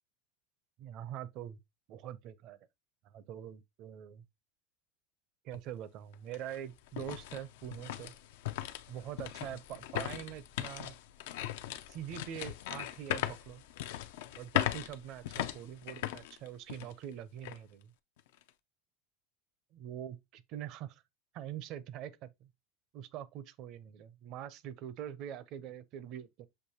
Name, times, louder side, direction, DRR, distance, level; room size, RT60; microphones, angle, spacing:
voice 1, 0.8-1.6 1.9-2.6 3.0-4.2 5.4-8.1 8.9-11.0 11.9-13.6 14.3-17.9 19.7-21.0 21.3-22.5 22.9-26.5, right 10 dB, 55° right, 0.6 m, -44 dB
sound 1, 5.5-5.6 6.1-17.0 17.4-17.6 18.2-18.5, left 13 dB, 85° left, 0.4 m, -39 dB
6.7 x 2.6 x 2.9 m
supercardioid pair, 130°, 0 cm